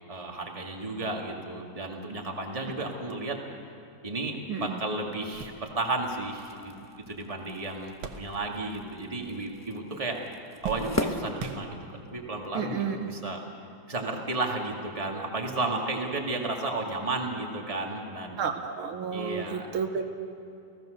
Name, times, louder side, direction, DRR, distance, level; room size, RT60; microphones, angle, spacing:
voice 1, 0.1-3.4 4.0-10.2 10.6-13.4 13.9-18.5 19.1-19.7, right 2 dB, 15° right, 1 dB, 2.1 m, -33 dB
sound 1, 4.6-4.7 5.1-8.8 9.1-9.8 10.1-12.2 12.9-13.0 14.3-14.5, right 6 dB, 70° right, 1.9 m, -43 dB
sound 2, 6.2-12.2, left 1 dB, 15° left, 0.5 m, -39 dB
voice 2, 12.5-13.0 18.4-20.0, right 6 dB, 90° right, 6 dB, 2.1 m, -31 dB
29.0 x 17.0 x 6.6 m, 2.7 s
omnidirectional pair, 2.2 m